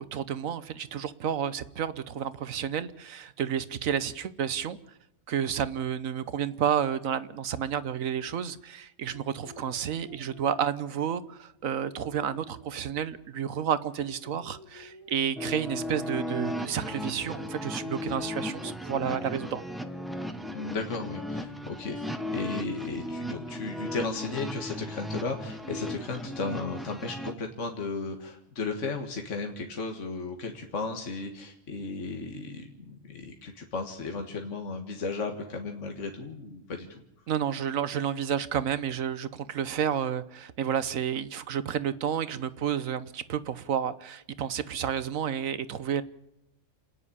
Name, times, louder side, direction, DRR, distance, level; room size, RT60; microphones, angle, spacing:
voice 1, 0.0-4.8 5.3-19.6 37.3-46.0, right 8 dB, 80° right, 1.4 m, -31 dB
sound 1, 9.0-13.4 13.7-16.2 16.5-22.4, left 2 dB, 25° left, 1.6 m, -52 dB
sound 2, 15.4-27.3, left 1 dB, ahead, 1.1 m, -36 dB
voice 2, 20.5-37.0, left 3 dB, 65° left, 2.0 m, -35 dB
28.5 x 9.9 x 9.9 m
omnidirectional pair, 1.4 m